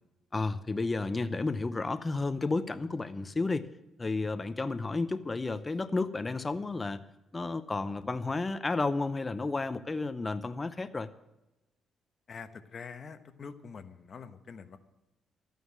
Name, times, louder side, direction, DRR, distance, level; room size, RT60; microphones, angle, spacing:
voice 1, 0.3-3.7 4.0-7.0 7.3-11.1, left 3 dB, 20° left, 12 dB, 0.7 m, -32 dB
voice 2, 12.3-14.8, left 5 dB, 40° left, 10 dB, 1.1 m, -45 dB
13.0 x 9.2 x 7.4 m, 0.98 s
cardioid pair, 120°, 0 cm